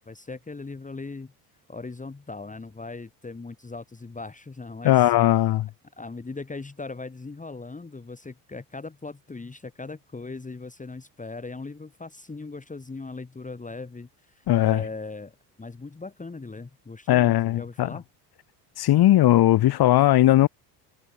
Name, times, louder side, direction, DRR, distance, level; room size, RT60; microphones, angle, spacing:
voice 1, 0.0-1.3 1.7-5.1 6.0-18.0, left 3 dB, 15° left, 2.3 m, -39 dB
voice 2, 4.8-5.7 14.5-14.8 17.1-17.9 18.8-20.5, left 14 dB, 50° left, 1.5 m, -18 dB
hypercardioid pair, 70°, 50 cm